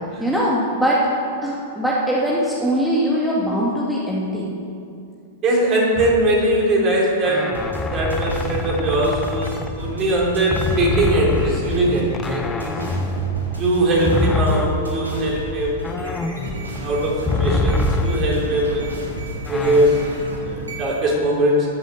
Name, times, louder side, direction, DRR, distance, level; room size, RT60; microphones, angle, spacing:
voice 1, 0.2-1.0 1.4-4.5, equal, 5° right, -6 dB, 2.2 m, -21 dB
voice 2, 5.4-7.4 7.9-12.8 13.6-15.9 16.8-18.9 19.5-20.1 20.4-21.7, right 1 dB, 35° right, -3 dB, 4.1 m, -20 dB
sound 1, 6.0-6.6 7.2-10.2 10.5-18.7 19.5-19.9, left 2 dB, 15° left, 0.9 m, -25 dB
sound 2, 7.5-21.1, right 1 dB, 85° right, 3.5 m, -32 dB
14.0 x 7.9 x 8.0 m, 2.5 s
figure-of-eight pair, 100°, 0 cm